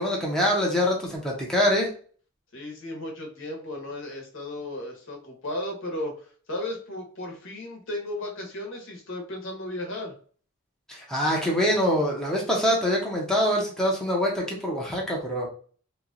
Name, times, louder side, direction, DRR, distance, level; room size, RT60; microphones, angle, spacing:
voice 1, 0.0-1.9 10.9-15.5, equal, 5° left, -3 dB, 0.8 m, -24 dB
voice 2, 2.5-10.1, left 1 dB, 65° left, 1 dB, 1.1 m, -35 dB
2.9 x 2.3 x 3.8 m, 0.43 s
head